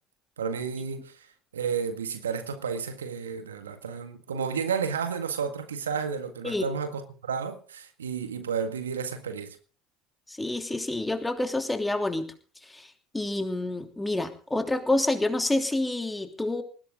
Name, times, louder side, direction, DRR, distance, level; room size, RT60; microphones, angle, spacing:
voice 1, 0.4-1.3 1.5-9.6, right 6 dB, 85° right, 1.8 m, -32 dB
voice 2, 10.3-12.3 12.7-12.8 13.1-16.6, left 2 dB, 10° left, 3.1 m, -28 dB
20.0 x 16.5 x 3.8 m
hypercardioid pair, 70°, 0 cm